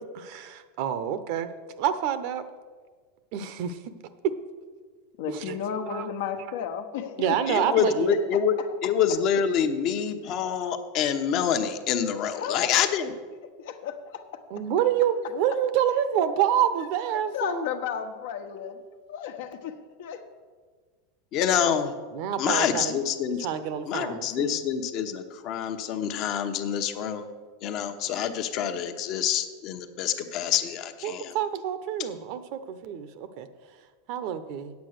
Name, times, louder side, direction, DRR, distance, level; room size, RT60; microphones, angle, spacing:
voice 1, 0.1-1.5 1.8-2.4 3.3-3.8 5.3-5.6 5.9-6.1 7.2-8.2 14.5-17.7 22.1-22.9 23.4-24.6 31.0-33.5 34.1-34.7, right 9 dB, 55° right, 12 dB, 0.8 m, -27 dB
voice 2, 5.2-7.9 8.3-8.4 12.4-12.7 13.6-14.2 17.3-18.8 19.1-20.2, left 8 dB, 75° left, 6 dB, 1.2 m, -33 dB
voice 3, 7.5-8.6 8.8-13.1 21.3-21.9 22.4-23.5 23.9-27.3 27.6-31.4, left 8 dB, 45° left, 7 dB, 1.0 m, -26 dB
8.6 x 8.3 x 6.6 m, 1.5 s
supercardioid pair, 135°, 0 cm